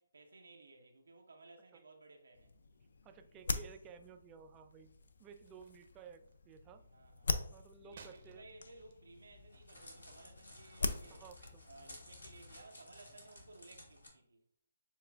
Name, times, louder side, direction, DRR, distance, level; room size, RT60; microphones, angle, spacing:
voice 1, 0.0-2.5 6.9-7.4 7.8-11.3 11.7-14.4, right 2 dB, 85° right, 0.6 m, -58 dB
sound 1, 2.3-12.6, left 3 dB, 70° left, 0.3 m, -43 dB
voice 2, 3.0-4.9 5.2-6.8 7.5-8.4 11.1-11.6, right 6 dB, 20° right, 0.3 m, -55 dB
sound 2, 5.3-11.1, right 5 dB, 45° right, 0.7 m, -64 dB
Crackle, 9.1-14.1, left 1 dB, 90° left, 1.3 m, -56 dB
6.9 x 2.4 x 2.3 m
hypercardioid pair, 150°, 0 cm